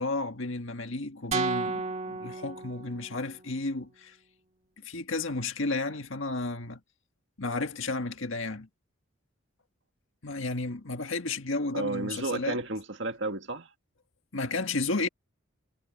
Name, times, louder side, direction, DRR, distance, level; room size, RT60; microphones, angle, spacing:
voice 1, 0.0-4.2 4.8-6.8 7.4-8.7 10.2-12.6 14.3-15.1, left 3 dB, 70° left, 1.7 m, -32 dB
sound 1, 1.3-3.4, right 4 dB, 35° right, 2.2 m, -32 dB
voice 2, 11.7-13.7, right 2 dB, 60° right, 2.1 m, -32 dB
head